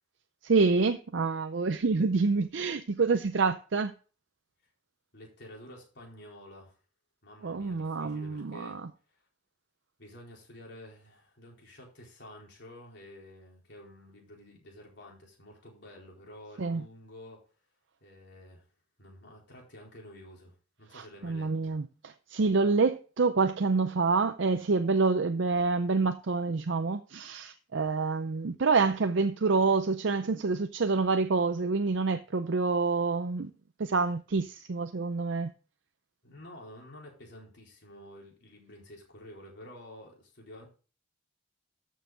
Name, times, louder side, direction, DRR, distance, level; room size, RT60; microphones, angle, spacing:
voice 1, 0.4-3.9 7.4-8.9 16.6-16.8 20.9-33.5 33.8-35.5, right 4 dB, 65° right, 0.5 m, -27 dB
voice 2, 5.1-6.8 7.2-8.8 9.1-9.2 10.0-17.4 18.0-18.7 19.0-21.7 36.2-40.7, left 1 dB, 55° left, 4.3 m, -50 dB
13.0 x 6.6 x 3.8 m
head